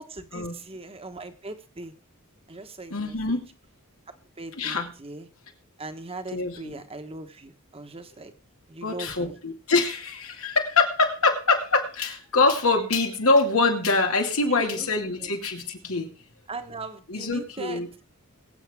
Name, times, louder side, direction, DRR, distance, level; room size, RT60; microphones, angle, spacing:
voice 1, 0.0-1.9 2.5-3.4 4.1-5.3 5.8-8.3 8.7-9.4 14.5-15.3 16.5-17.9, right 2 dB, 25° right, 8 dB, 1.3 m, -39 dB
voice 2, 2.9-3.5 4.6-4.9 6.3-6.8 8.8-16.1 17.1-17.9, left 3 dB, 80° left, 3 dB, 2.3 m, -24 dB
22.0 x 8.2 x 3.6 m, 0.36 s
head